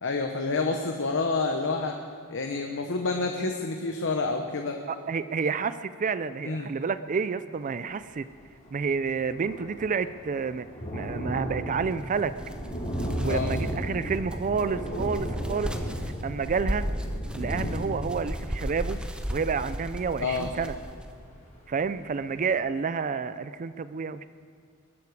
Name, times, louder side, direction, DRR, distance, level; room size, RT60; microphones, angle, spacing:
voice 1, 0.0-2.0 2.3-4.8 6.4-6.7 13.2-13.6 20.2-20.5, left 3 dB, 60° left, 4 dB, 1.0 m, -28 dB
voice 2, 4.9-8.3 8.7-10.7 10.9-12.3 13.2-15.7 16.2-16.9 17.4-19.0 19.3-20.7 21.7-24.3, right 5 dB, 35° right, 13 dB, 0.4 m, -29 dB
Thunder, 8.3-8.4 8.6-21.3 21.7-21.8 22.2-22.3, equal, 35° left, 4.9 m, -35 dB
sound 1, 11.8-21.1, equal, 5° right, 0.8 m, -36 dB
21.0 x 12.0 x 4.8 m, 2.4 s
head